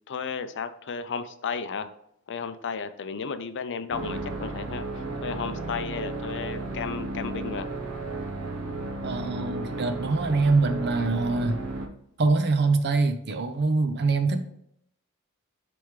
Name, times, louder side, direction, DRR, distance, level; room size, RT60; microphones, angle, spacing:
voice 1, 0.1-1.9 2.3-7.7, left 5 dB, 55° left, 11 dB, 0.5 m, -33 dB
sound 1, 3.9-11.9, right 2 dB, 70° right, 1.0 m, -34 dB
voice 2, 9.0-11.6 12.2-14.5, right 3 dB, 50° right, 9 dB, 0.7 m, -24 dB
10.0 x 3.5 x 3.2 m, 0.73 s
head